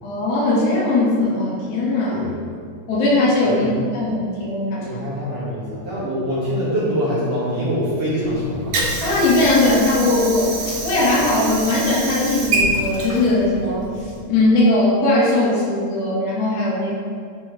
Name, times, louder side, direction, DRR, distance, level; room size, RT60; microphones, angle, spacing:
voice 1, 0.0-2.2 2.9-3.7 3.9-5.0 9.0-13.9 14.3-16.9, left 2 dB, 85° left, -6 dB, 4.0 m, -19 dB
voice 2, 4.7-9.0, equal, 40° right, -10 dB, 3.0 m, -24 dB
Water / Sink (filling or washing), 8.2-14.2, right 2 dB, 60° right, 1.7 m, -26 dB
10.5 x 6.1 x 3.5 m, 2.2 s
omnidirectional pair, 4.7 m